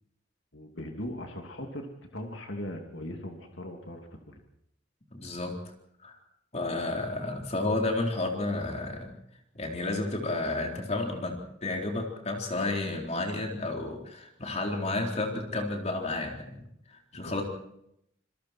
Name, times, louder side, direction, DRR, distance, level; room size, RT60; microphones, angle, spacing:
voice 1, 0.5-1.9 2.1-4.4 17.1-17.4, left 1 dB, 65° left, 3 dB, 2.9 m, -39 dB
voice 2, 5.1-5.6 6.0-6.1 6.5-9.1 9.5-16.6 16.9-17.4, left 2 dB, 35° left, 1 dB, 4.0 m, -31 dB
27.0 x 22.0 x 4.6 m, 0.76 s
head